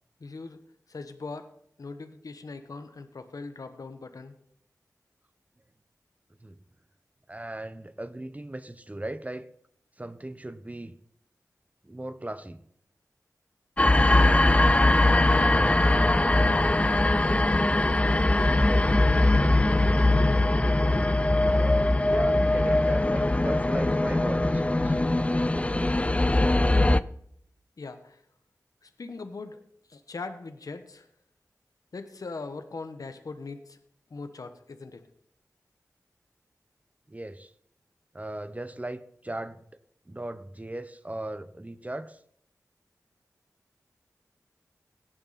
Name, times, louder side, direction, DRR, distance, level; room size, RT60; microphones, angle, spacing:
voice 1, 0.2-0.6 0.9-1.5 1.8-4.3 14.1-14.4 15.0-16.7 17.1-17.5 27.8-28.2 28.8-29.6 29.9-31.1 31.9-33.8 34.1-35.0, left 3 dB, 75° left, 8 dB, 1.3 m, -40 dB
voice 2, 7.3-9.5 10.0-11.0 11.8-12.6 21.5-25.0 37.1-37.5 38.1-39.6 40.1-42.2, right 1 dB, 25° right, 13 dB, 1.0 m, -37 dB
sound 1, 13.8-27.0, left 2 dB, 20° left, 0.5 m, -21 dB
17.5 x 10.5 x 4.3 m, 0.69 s
cardioid pair, 45°, 6 cm